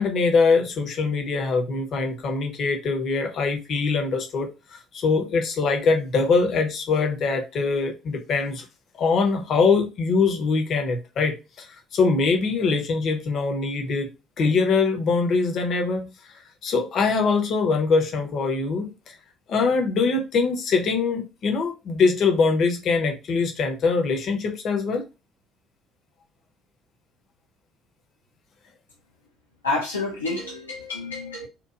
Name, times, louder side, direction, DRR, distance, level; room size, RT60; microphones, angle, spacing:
voice 1, 0.0-8.6 9.0-11.7 11.9-14.1 14.4-18.9 19.5-25.0, left 4 dB, 50° left, 0.7 m, -23 dB
voice 2, 29.6-31.5, left 3 dB, 85° left, 0.4 m, -29 dB
2.9 x 2.2 x 2.4 m
figure-of-eight pair, 55°, 0 cm